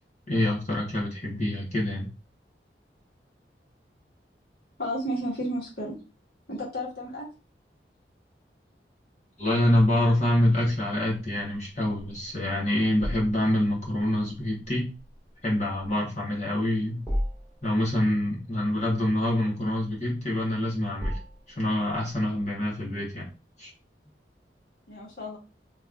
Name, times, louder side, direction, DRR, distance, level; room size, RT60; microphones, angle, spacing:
voice 1, 0.3-2.1 9.4-14.9 15.4-17.0 17.6-21.1 21.6-23.3 23.6-23.7, left 1 dB, 40° left, -3 dB, 1.1 m, -26 dB
voice 2, 4.8-6.0 6.5-7.2 24.9-25.4, equal, 60° left, -4 dB, 1.8 m, -32 dB
sound 1, 13.0-22.5, equal, 15° left, 1.5 m, -39 dB
3.5 x 3.0 x 2.5 m, 0.31 s
head